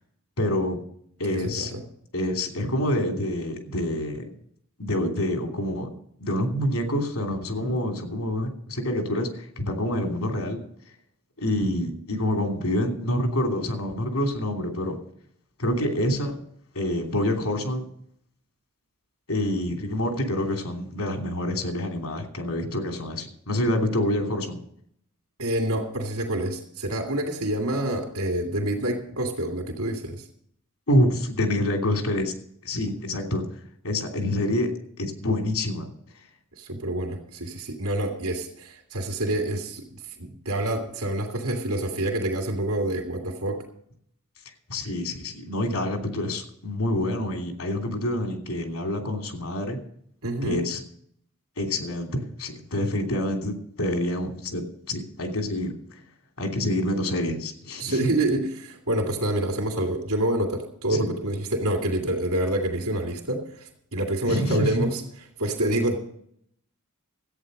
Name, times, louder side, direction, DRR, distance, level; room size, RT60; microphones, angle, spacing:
voice 1, 0.4-0.8 1.2-1.7 2.1-4.3 4.8-5.9 6.2-10.6 11.4-14.9 15.6-16.3 16.7-17.9 19.3-24.6 30.9-32.4 32.6-33.4 33.8-35.9 44.7-49.8 50.4-50.8 51.6-55.8 56.4-58.1 60.9-61.1 64.3-64.9, left 1 dB, 85° left, 4 dB, 3.0 m, -27 dB
voice 2, 1.3-1.8 7.6-7.8 25.4-30.3 36.6-43.6 50.2-50.7 57.8-66.0, right 1 dB, 85° right, 2 dB, 2.5 m, -27 dB
14.0 x 8.9 x 6.5 m, 0.66 s
head